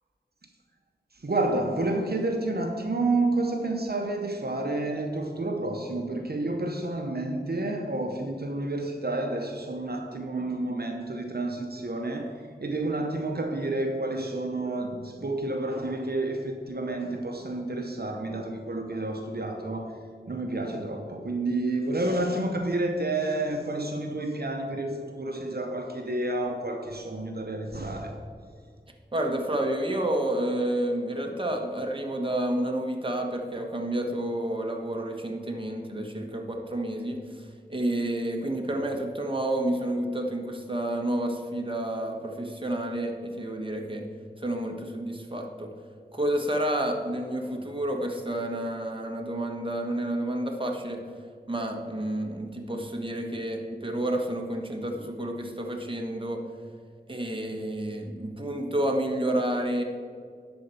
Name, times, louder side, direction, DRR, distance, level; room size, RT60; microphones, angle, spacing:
voice 1, 1.1-20.0 20.3-28.2, right 2 dB, 70° right, 3 dB, 0.8 m, -30 dB
voice 2, 29.1-44.1 44.4-45.7 46.1-51.0 51.5-56.4 57.1-59.8, right 1 dB, 30° right, 2 dB, 1.3 m, -30 dB
10.5 x 4.4 x 6.9 m, 2.1 s
wide cardioid pair, 45°, 17 cm